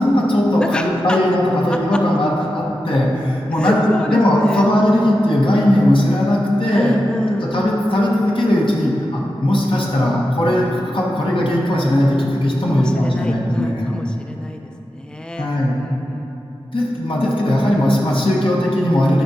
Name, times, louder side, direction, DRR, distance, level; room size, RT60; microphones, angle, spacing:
voice 1, 0.0-6.9 7.3-13.8 15.4-15.8 16.7-19.2, left 1 dB, 60° left, -3 dB, 1.0 m, -17 dB
voice 2, 0.6-1.2 1.7-2.0 3.5-4.7 6.7-7.7 12.7-16.4, left 1 dB, 10° left, 3 dB, 0.4 m, -27 dB
11.0 x 4.8 x 2.8 m, 2.9 s
wide cardioid pair, 60°, 10 cm